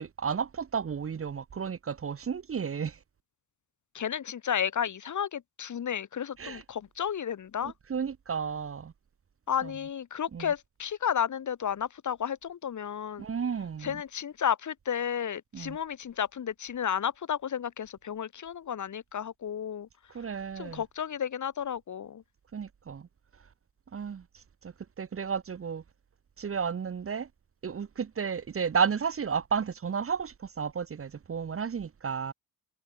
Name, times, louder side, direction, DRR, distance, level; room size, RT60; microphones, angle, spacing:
voice 1, 0.0-3.0 6.4-6.6 7.6-8.9 9.6-9.7 10.3-10.5 13.2-14.0 15.5-15.8 20.1-20.8 22.5-23.1 23.9-25.8 26.4-27.3 27.6-32.3, right 6 dB, 35° right, 0.9 m, -33 dB
voice 2, 3.9-7.7 9.5-13.2 13.8-19.9 20.6-22.2, left 8 dB, 50° left, 1.1 m, -32 dB
cardioid pair, 65°, 38 cm